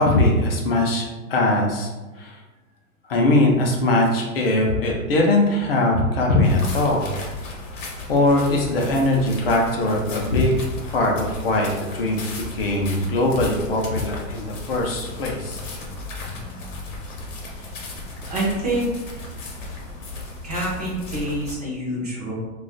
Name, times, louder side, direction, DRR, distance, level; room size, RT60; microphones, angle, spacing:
voice 1, 0.0-1.9 2.2-2.4 3.1-7.1 8.1-10.6 10.9-15.6, left 2 dB, 45° left, 0 dB, 0.5 m, -21 dB
sound 1, 6.4-21.6, left 2 dB, 60° left, 0.9 m, -35 dB
voice 2, 18.3-18.9 20.4-22.3, right 1 dB, 30° right, -5 dB, 0.4 m, -26 dB
2.3 x 2.3 x 3.8 m, 1.1 s
supercardioid pair, 180°, 43 cm